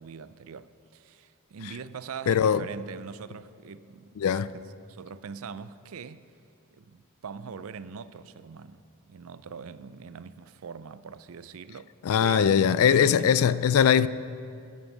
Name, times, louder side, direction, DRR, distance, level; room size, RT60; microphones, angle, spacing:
voice 1, 0.0-6.3 6.7-11.9 12.2-13.3, right 6 dB, 70° right, 0.4 m, -42 dB
voice 2, 2.3-2.7 4.2-4.5 12.0-14.1, left 8 dB, 70° left, 0.3 m, -21 dB
12.0 x 8.6 x 7.3 m
head